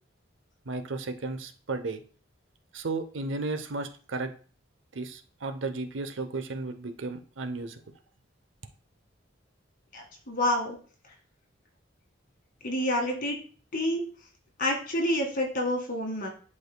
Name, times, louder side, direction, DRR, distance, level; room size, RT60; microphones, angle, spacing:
voice 1, 0.7-2.0 2.7-4.3 4.9-7.8, right 3 dB, 80° right, 8 dB, 0.8 m, -34 dB
voice 2, 9.9-10.8 12.6-13.4 13.7-14.0 14.6-16.3, left 1 dB, 50° left, 1 dB, 1.9 m, -28 dB
10.5 x 4.8 x 2.2 m, 0.41 s
head